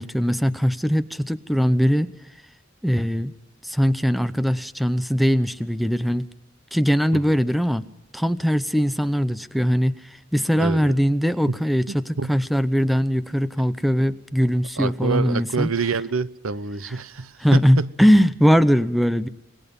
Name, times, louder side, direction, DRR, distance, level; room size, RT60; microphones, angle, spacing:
voice 1, 0.0-2.1 2.8-3.3 3.6-6.3 6.7-7.8 8.1-10.0 10.3-15.7 17.4-19.3, equal, ahead, 0.7 m, -20 dB
voice 2, 10.6-10.9 11.5-11.6 12.2-12.3 14.8-17.9, right 4 dB, 85° right, 0.8 m, -27 dB
26.5 x 21.0 x 5.4 m
head